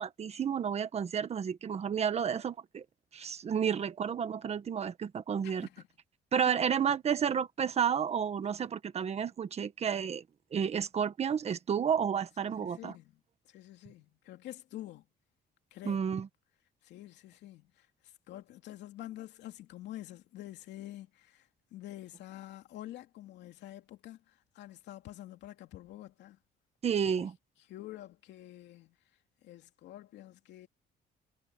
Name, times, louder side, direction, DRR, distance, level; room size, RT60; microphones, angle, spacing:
voice 1, 0.0-2.8 3.1-5.7 6.3-10.2 10.5-12.9 15.8-16.3 26.8-27.3, right 7 dB, 40° right, 1.4 m, -31 dB
voice 2, 5.4-5.9 6.4-6.5 12.4-15.1 15.7-16.0 16.8-26.4 27.2-27.3 27.7-29.0 29.4-30.7, left 14 dB, 85° left, 2.7 m, -48 dB
cardioid pair, 145°, 18 cm